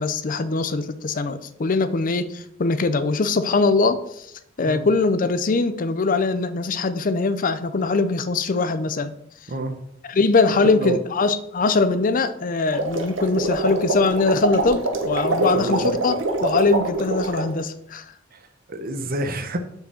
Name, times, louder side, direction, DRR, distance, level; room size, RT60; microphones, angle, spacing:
voice 1, 0.0-4.3 4.6-9.1 10.1-18.0, left 3 dB, 45° left, 0.5 m, -22 dB
voice 2, 9.5-9.8 10.7-11.0 15.3-15.9 18.3-19.6, right 1 dB, 50° right, 0.9 m, -29 dB
sound 1, 12.6-17.5, right 2 dB, 75° right, 1.2 m, -25 dB
6.6 x 4.9 x 6.3 m
head